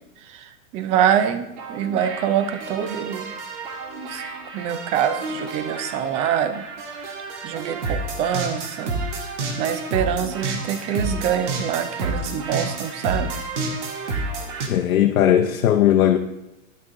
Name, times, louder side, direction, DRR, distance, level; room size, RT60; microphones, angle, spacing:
voice 1, 0.3-3.3 4.1-4.2 4.5-6.6 7.4-9.0 9.6-13.3, right 9 dB, 20° right, 10 dB, 0.3 m, -25 dB
sound 1, 1.6-14.7, right 3 dB, 60° right, 1.6 m, -30 dB
voice 2, 14.7-16.2, left 11 dB, 85° left, 3 dB, 0.7 m, -17 dB
11.0 x 6.2 x 3.6 m, 0.92 s
hypercardioid pair, 120°, 40 cm